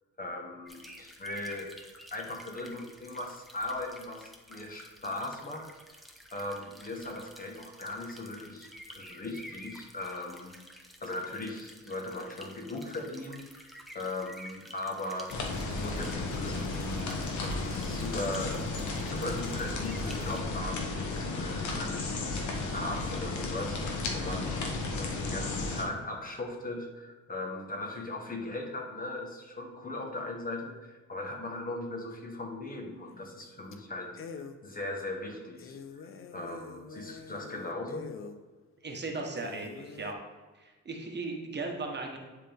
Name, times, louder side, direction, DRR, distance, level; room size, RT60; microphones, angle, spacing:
voice 1, 0.2-1.7 2.1-5.7 5.9-10.5 11.0-13.7 13.9-18.6 19.0-38.1, left 2 dB, 30° left, 2 dB, 1.3 m, -39 dB
sound 1, 0.7-20.4, equal, ahead, 1.0 m, -51 dB
sound 2, 15.3-25.8, left 3 dB, 70° left, 1.2 m, -33 dB
sound 3, 33.1-33.4 33.7-33.8 34.2-34.6 35.1-35.2 35.6-38.4 38.9-39.0 39.4-40.1, left 6 dB, 45° left, 0.6 m, -46 dB
voice 2, 38.8-40.2 40.6-42.2, right 3 dB, 35° right, 1 dB, 1.3 m, -37 dB
9.7 x 3.8 x 3.5 m, 1.3 s
cardioid pair, 90°, 30 cm